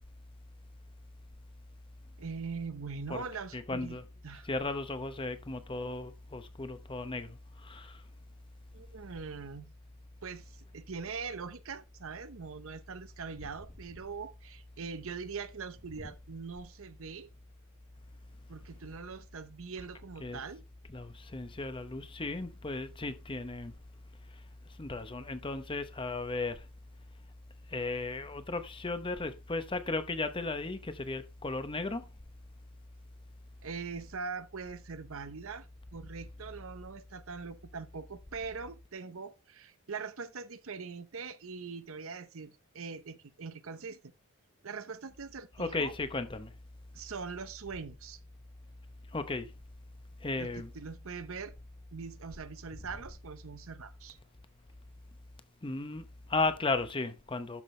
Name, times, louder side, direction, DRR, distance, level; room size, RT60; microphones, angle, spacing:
voice 1, 2.2-4.0 4.2-4.5 8.7-9.7 10.2-17.3 18.5-20.6 33.6-35.7 35.9-44.0 44.6-45.9 46.9-48.2 50.4-51.6 51.9-54.2, right 5 dB, 65° right, 0.8 m, -42 dB
voice 2, 3.5-4.0 4.5-8.0 20.2-20.4 20.9-23.7 24.8-26.6 27.7-32.0 45.6-46.5 49.1-49.5 50.2-50.7 55.6-57.6, left 3 dB, 25° left, 0.8 m, -35 dB
12.0 x 6.0 x 3.2 m
head